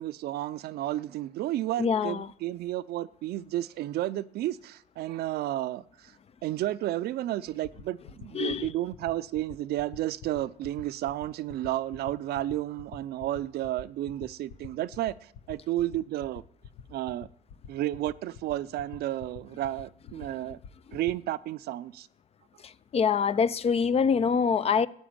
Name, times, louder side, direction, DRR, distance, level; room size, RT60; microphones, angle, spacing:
voice 1, 0.0-6.1 6.4-15.1 15.5-16.4 16.9-17.3 17.7-20.6 20.9-22.1, right 14 dB, 70° right, 0.6 m, -32 dB
voice 2, 1.8-2.3 8.3-8.7 22.6-24.9, left 6 dB, 35° left, 0.6 m, -25 dB
sound 1, 7.4-21.1, left 8 dB, 75° left, 1.1 m, -45 dB
13.5 x 8.5 x 8.7 m
cardioid pair, 110°, 17 cm